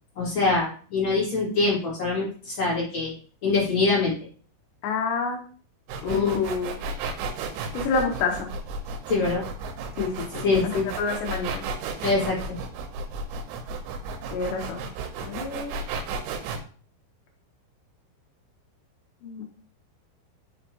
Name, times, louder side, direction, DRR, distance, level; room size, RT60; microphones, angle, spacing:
voice 1, 0.2-3.1 3.4-4.1 6.1-6.4 9.1-9.4 10.4-10.9 12.0-12.4, left 3 dB, 35° left, -6 dB, 2.1 m, -24 dB
voice 2, 4.8-5.4 6.0-6.8 7.7-8.5 10.0-11.6 14.3-14.9 15.2-15.7 19.2-19.5, left 5 dB, 75° left, 1 dB, 3.0 m, -28 dB
sound 1, 5.9-16.6, right 4 dB, 90° right, 3.3 m, -33 dB
6.3 x 5.8 x 3.0 m, 0.42 s
omnidirectional pair, 5.6 m